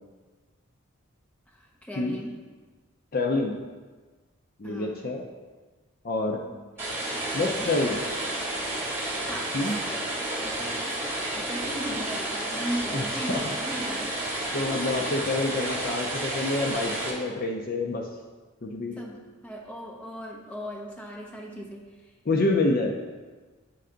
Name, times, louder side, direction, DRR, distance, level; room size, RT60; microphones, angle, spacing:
voice 1, 1.5-2.4 4.6-5.1 6.5-6.6 7.0-7.7 9.3-11.0 11.3-14.1 14.7-14.9 19.0-21.8, equal, 5° left, -2 dB, 0.7 m, -38 dB
voice 2, 3.1-3.5 4.6-5.2 6.0-6.4 7.3-8.0 9.5-9.8 12.9-13.4 14.5-18.0 18.6-19.0 22.3-22.9, left 2 dB, 45° left, 2 dB, 0.5 m, -27 dB
sound 1, 6.8-17.1, right 1 dB, 10° right, 1.3 m, -31 dB
7.8 x 3.4 x 3.8 m, 1.3 s
head